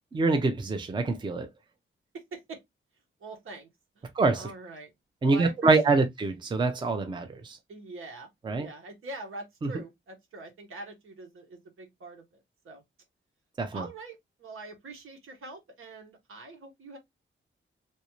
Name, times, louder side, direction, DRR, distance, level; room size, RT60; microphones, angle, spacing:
voice 1, 0.1-1.5 4.1-4.5 5.2-7.6 8.4-8.7 9.6-9.7 13.6-13.9, right 3 dB, 20° right, 0.5 m, -25 dB
voice 2, 2.1-2.6 3.2-3.7 3.9-4.9 5.2-6.0 7.7-8.3 8.6-12.8 13.7-17.0, right 2 dB, 85° right, 1.3 m, -44 dB
3.2 x 2.6 x 2.9 m
wide cardioid pair, 165°, 21 cm